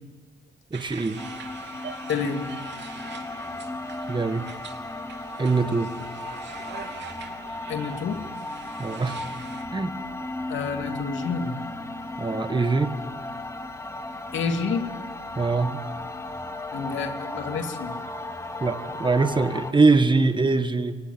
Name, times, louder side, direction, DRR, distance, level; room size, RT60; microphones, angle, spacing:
voice 1, 0.7-1.2 4.1-4.5 5.4-5.9 8.8-9.2 9.7-9.9 12.2-13.0 15.4-15.8 18.6-21.0, right 3 dB, 25° right, 9 dB, 1.7 m, -22 dB
sound 1, 0.7-9.6, right 6 dB, 65° right, 3.3 m, -44 dB
sound 2, 1.2-19.7, left 2 dB, 15° left, 2.2 m, -35 dB
voice 2, 2.1-2.5 7.7-8.2 10.5-11.5 14.3-14.9 16.7-17.9, left 5 dB, 70° left, 6 dB, 2.6 m, -29 dB
22.5 x 20.0 x 9.4 m, 1.3 s
cardioid pair, 90°, 20 cm